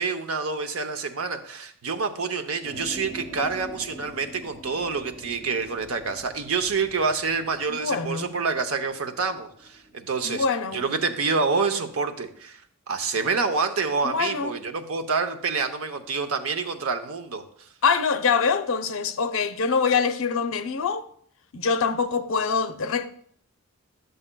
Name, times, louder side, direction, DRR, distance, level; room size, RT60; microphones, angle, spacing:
voice 1, 0.0-10.5 10.7-12.6 12.9-17.4, right 4 dB, 85° right, 0.7 m, -27 dB
sound 1, 2.6-10.1, right 1 dB, 70° right, 3.0 m, -44 dB
voice 2, 7.7-8.4 10.2-10.8 14.0-14.6 17.8-21.1 21.5-23.1, left 5 dB, 70° left, 0.5 m, -24 dB
11.0 x 6.7 x 2.2 m
head